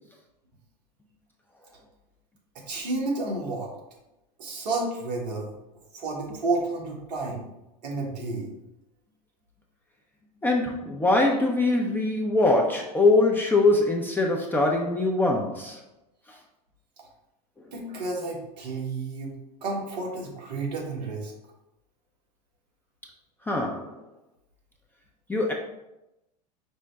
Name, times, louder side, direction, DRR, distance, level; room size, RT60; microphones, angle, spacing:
voice 1, 2.7-3.7 4.4-5.5 5.9-7.5 7.8-8.5 17.7-19.3 19.6-21.3, right 3 dB, 80° right, -2 dB, 1.6 m, -31 dB
voice 2, 10.4-15.8 16.3-16.4 23.5-24.0 25.3-25.5, left 2 dB, 10° left, -1 dB, 0.6 m, -23 dB
5.2 x 2.1 x 4.7 m, 0.92 s
hypercardioid pair, 95°, 21 cm